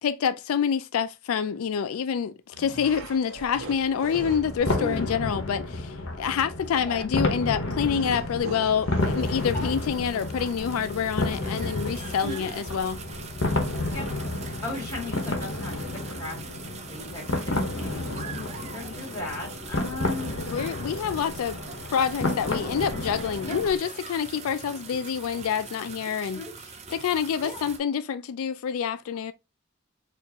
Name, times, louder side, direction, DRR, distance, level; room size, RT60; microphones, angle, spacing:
voice 1, 0.0-13.0 20.5-21.6 21.9-26.4 26.9-29.3, left 7 dB, 90° left, 0.4 m, -27 dB
sound 1, 2.5-5.1 7.7-10.0, right 3 dB, 80° right, 0.9 m, -40 dB
sound 2, 4.1-23.8, left 2 dB, 65° left, 1.0 m, -31 dB
voice 2, 4.8-5.1 6.8-7.1 9.5-9.7 12.2-12.5 13.9-14.1 14.4-16.4 16.9-20.3 23.5-23.6 26.3-26.5 27.4-27.6, left 2 dB, 15° left, 2.5 m, -37 dB
sound 3, 9.0-27.8, right 5 dB, 30° right, 0.5 m, -43 dB
4.5 x 2.5 x 2.8 m
head